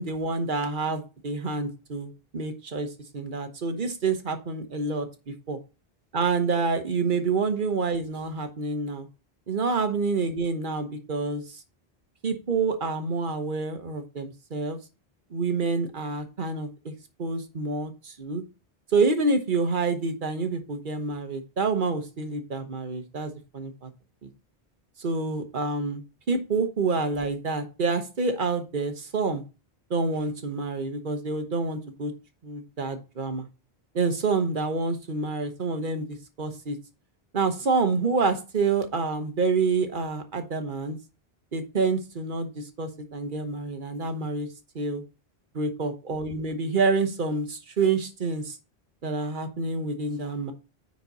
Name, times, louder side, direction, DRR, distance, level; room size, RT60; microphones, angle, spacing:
voice 1, 0.0-2.9 3.1-5.6 6.1-9.1 9.5-11.6 12.2-14.8 15.3-16.9 17.2-18.4 18.9-23.9 24.2-24.3 25.0-29.4 29.9-32.1 32.4-33.5 33.9-36.8 37.3-41.0 41.5-44.5 44.7-45.0 45.5-48.6 49.0-50.5, right 4 dB, 55° right, 7 dB, 1.2 m, -28 dB
9.5 x 4.2 x 4.0 m, 0.31 s
omnidirectional pair, 1.0 m